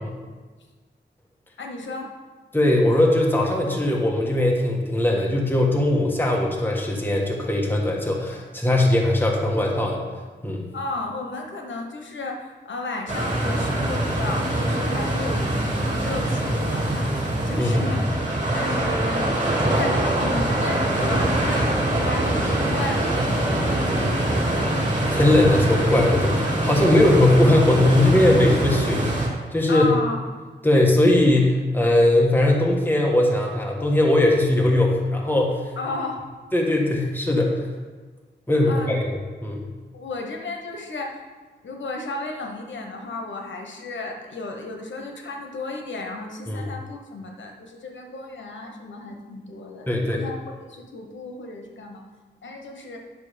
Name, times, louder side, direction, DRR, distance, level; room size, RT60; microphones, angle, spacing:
voice 1, 1.6-2.1 10.7-18.1 18.5-24.6 29.7-30.2 35.8-36.2 38.6-38.9 39.9-41.2 41.6-50.4 50.7-52.0 52.4-53.0, left 2 dB, 85° left, 2 dB, 1.1 m, -33 dB
voice 2, 2.5-10.0 10.4-10.6 17.6-18.0 25.1-29.1 29.5-29.9 30.6-35.6 36.5-37.7 38.5-39.1 39.4-39.7 46.5-46.7 49.9-50.2, left 1 dB, 10° left, -1 dB, 1.5 m, -20 dB
sound 1, 13.1-29.3, right 1 dB, 40° right, 2.7 m, -23 dB
11.0 x 5.9 x 5.1 m, 1.4 s
wide cardioid pair, 85°, 19 cm